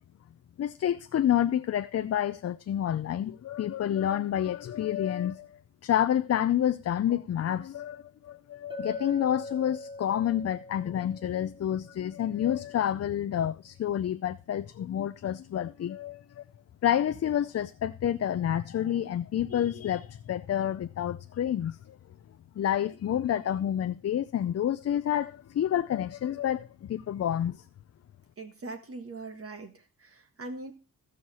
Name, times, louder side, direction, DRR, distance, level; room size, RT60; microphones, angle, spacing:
voice 1, 0.6-16.4 16.8-21.8 22.6-27.6, left 10 dB, 45° left, 0.5 m, -29 dB
Chink clink, 8.7-12.7, left 1 dB, 15° right, 2.5 m, -43 dB
voice 2, 28.4-30.7, right 3 dB, 40° right, 1.4 m, -41 dB
16.0 x 6.4 x 4.2 m
wide cardioid pair, 130°, 35 cm